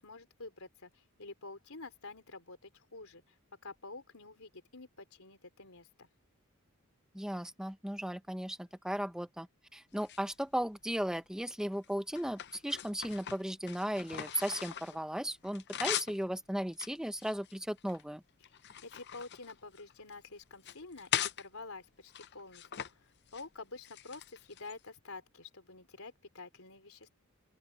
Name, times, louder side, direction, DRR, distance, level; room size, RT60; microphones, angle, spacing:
voice 1, 0.0-3.4 3.6-6.1 18.5-18.6 18.8-27.1, left 3 dB, 70° left, 4.3 m, -49 dB
voice 2, 7.1-9.5 9.7-18.2, equal, 5° right, 1.0 m, -36 dB
sound 1, 9.9-10.9 11.5-15.0 15.3-16.2 16.7-18.0 18.4-20.1 20.5-21.4 22.1-22.9 23.2-23.4 23.8-24.8, left 10 dB, 50° left, 0.7 m, -40 dB
open air
head